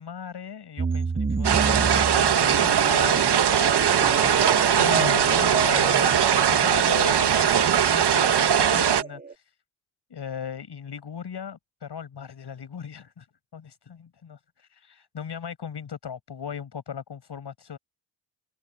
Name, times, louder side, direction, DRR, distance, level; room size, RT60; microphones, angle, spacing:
voice 1, 0.0-7.5 7.9-9.4 10.1-13.3 13.5-17.8, left 7 dB, 55° left, 7.8 m, -37 dB
sound 1, 0.8-9.3, right 4 dB, 20° right, 1.0 m, -31 dB
sound 2, 1.4-9.0, right 8 dB, 55° right, 2.1 m, -20 dB
supercardioid pair, 50°, 47 cm